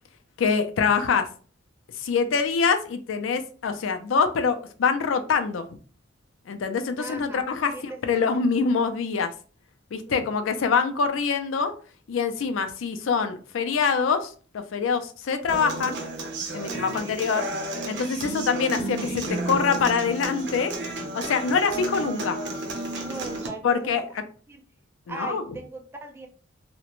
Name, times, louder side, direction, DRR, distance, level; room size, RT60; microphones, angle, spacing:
voice 1, 0.4-1.3 2.0-5.6 6.5-9.3 9.9-11.7 12.1-14.3 14.7-16.0 16.5-17.4 17.9-20.7 21.1-22.4 23.6-24.0 25.1-25.4, left 5 dB, 80° left, 8 dB, 0.4 m, -24 dB
voice 2, 7.0-7.4 7.7-8.4 10.1-10.5 16.6-17.1 23.0-24.0 24.5-24.6 25.1-26.3, right 3 dB, 10° right, 3 dB, 0.3 m, -39 dB
Human voice / Acoustic guitar, 15.5-23.5, right 2 dB, 60° right, 0.6 m, -32 dB
2.4 x 2.1 x 2.9 m, 0.41 s
head